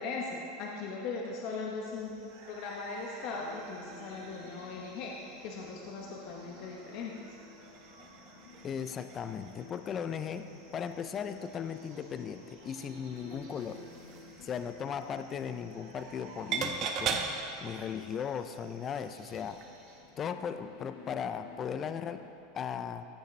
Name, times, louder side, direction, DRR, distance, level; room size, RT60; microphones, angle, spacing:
voice 1, 0.0-7.3, left 4 dB, 55° left, -1 dB, 0.9 m, -39 dB
sound 1, 1.8-20.0, right 3 dB, 80° right, 2.0 m, -55 dB
sound 2, 3.3-22.3, left 3 dB, 75° left, 1.2 m, -54 dB
sound 3, 7.6-9.7 10.2-10.3 10.7-11.7 12.1-12.2 13.3-14.7 15.9-16.2 16.5-17.9 19.3-19.7 20.1-20.2, right 5 dB, 40° right, 0.8 m, -38 dB
voice 2, 8.6-13.8 14.4-17.2 17.6-19.6 20.2-22.2 22.5-23.1, left 7 dB, 30° left, 10 dB, 0.3 m, -37 dB
14.5 x 7.3 x 3.2 m, 2.8 s
supercardioid pair, 130°, 0 cm